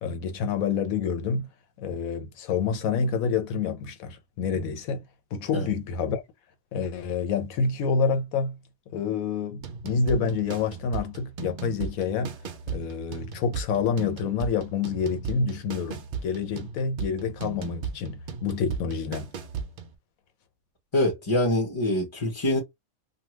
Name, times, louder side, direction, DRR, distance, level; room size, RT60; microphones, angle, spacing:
voice 1, 0.0-1.5 1.8-5.0 5.3-6.2 6.7-8.6 8.9-12.4 12.7-19.3, left 5 dB, 75° left, 1.1 m, -28 dB
sound 1, 9.6-20.0, right 6 dB, 60° right, 0.5 m, -37 dB
voice 2, 20.9-22.6, left 1 dB, 25° left, 0.7 m, -24 dB
2.8 x 2.3 x 3.0 m
omnidirectional pair, 1.5 m